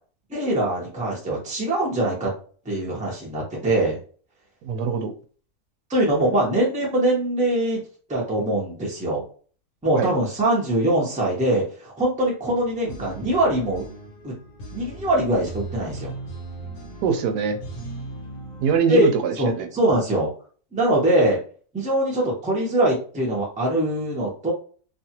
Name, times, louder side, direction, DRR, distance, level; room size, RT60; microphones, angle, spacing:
voice 1, 0.3-2.3 2.6-4.0 5.9-7.8 8.1-9.2 9.8-13.8 14.2-14.3 14.7-16.1 18.9-19.1 19.4-20.3 20.7-21.4 21.7-24.5, right 1 dB, 5° right, -3 dB, 0.6 m, -22 dB
voice 2, 4.6-5.1 10.0-10.1 17.0-17.6 18.6-19.7, right 6 dB, 80° right, 7 dB, 1.1 m, -23 dB
sound 1, 12.4-18.8, right 2 dB, 60° left, 1.1 m, -38 dB
2.8 x 2.4 x 2.8 m, 0.42 s
omnidirectional pair, 1.7 m